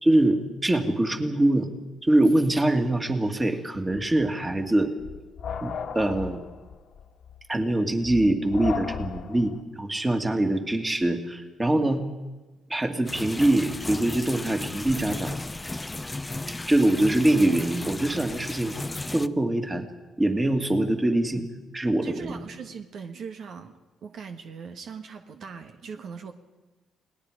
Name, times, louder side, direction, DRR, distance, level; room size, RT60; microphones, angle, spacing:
voice 1, 0.0-1.7 2.1-4.9 5.6-6.4 7.5-12.1 12.7-15.3 16.7-18.7 19.1-19.9 20.2-21.4 21.7-22.3, right 1 dB, 20° right, 5 dB, 2.3 m, -23 dB
sound 1, 3.9-9.6, left 7 dB, 65° left, 1.7 m, -36 dB
sound 2, 13.1-19.3, left 2 dB, 15° left, 0.7 m, -34 dB
voice 2, 22.0-23.7 24.0-26.3, right 6 dB, 65° right, 5 dB, 1.4 m, -40 dB
29.0 x 19.0 x 5.0 m, 1.2 s
cardioid pair, 90°, 0 cm